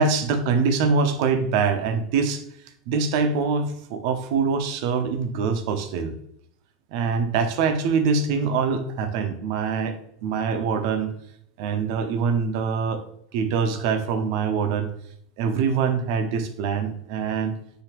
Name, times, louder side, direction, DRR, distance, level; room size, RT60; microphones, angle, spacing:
voice 1, 0.0-2.4 2.9-6.1 6.9-10.0 10.2-11.1 11.6-13.0 13.3-14.9 15.4-17.5, right 5 dB, 60° right, 8 dB, 0.6 m, -24 dB
5.8 x 2.8 x 3.0 m, 0.70 s
hypercardioid pair, 105°, 3 cm